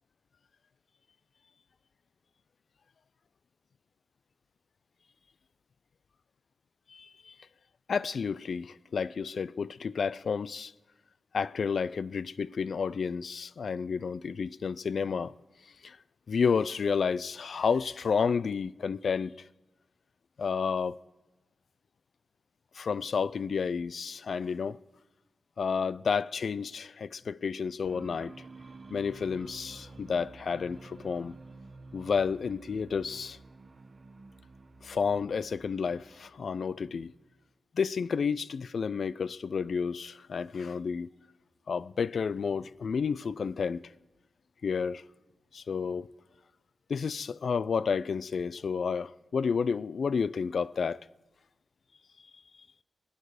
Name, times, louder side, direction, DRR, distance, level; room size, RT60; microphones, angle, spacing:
voice 1, 6.9-7.3 7.9-10.7 11.3-15.3 15.8-16.0 16.3-19.3 20.4-21.0 22.7-24.8 25.6-28.3 28.9-31.4 31.9-33.4 34.8-37.1 37.7-41.1 41.7-43.8 44.6-45.0 45.5-46.1 46.9-51.0, left 6 dB, 65° left, 0.4 m, -31 dB
sound 1, 27.8-37.4, right 3 dB, 40° right, 1.0 m, -51 dB
25.5 x 9.0 x 4.9 m
wide cardioid pair, 165°, 0 cm